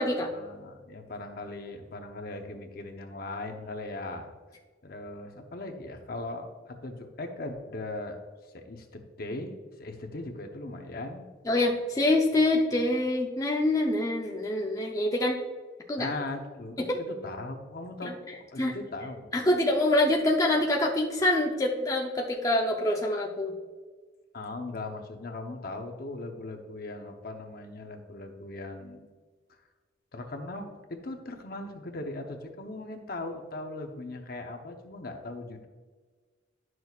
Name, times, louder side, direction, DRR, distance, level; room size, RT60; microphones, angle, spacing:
voice 1, 0.3-4.3 4.8-8.2 8.5-9.5 9.8-11.2 16.0-18.2 18.5-19.3 24.3-29.1 30.1-35.7, left 2 dB, 55° left, 4 dB, 0.8 m, -39 dB
voice 2, 11.5-15.4 15.9-16.1 16.8-17.0 18.0-18.1 18.6-18.8 19.3-23.5, left 1 dB, 20° left, -1 dB, 0.6 m, -25 dB
10.5 x 6.2 x 2.4 m, 1.4 s
head